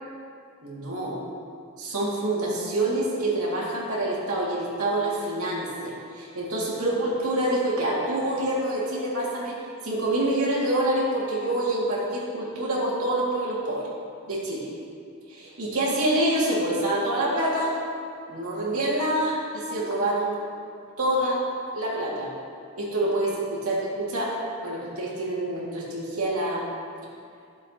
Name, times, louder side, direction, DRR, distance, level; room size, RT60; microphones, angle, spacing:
voice 1, 0.6-1.2 1.8-9.6 9.8-13.9 14.3-14.7 15.3-17.7 18.3-20.4 21.0-21.4 21.7-22.3 22.8-24.4 24.6-26.6, right 1 dB, 85° right, -5 dB, 2.2 m, -26 dB
12.5 x 7.2 x 2.9 m, 2.3 s
head